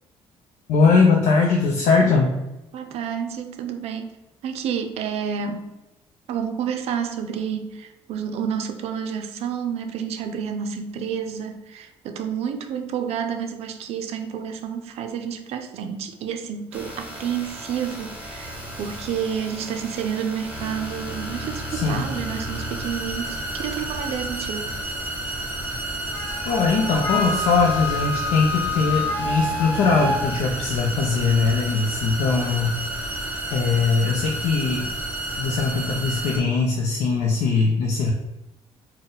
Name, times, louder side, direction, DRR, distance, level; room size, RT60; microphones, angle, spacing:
voice 1, 0.7-2.4 21.7-22.1 26.4-32.8 33.5-34.9 35.4-38.1, left 4 dB, 75° left, 0 dB, 0.5 m, -21 dB
voice 2, 2.7-4.2 4.4-5.7 6.3-24.7, right 7 dB, 70° right, 6 dB, 0.4 m, -30 dB
sound 1, 16.7-36.4, right 1 dB, 10° right, 0.9 m, -32 dB
Wind instrument woodwind instrument, 26.1-30.2, left 2 dB, 35° left, 0.9 m, -27 dB
4.0 x 2.1 x 3.8 m, 0.99 s
cardioid pair, 120°, 11 cm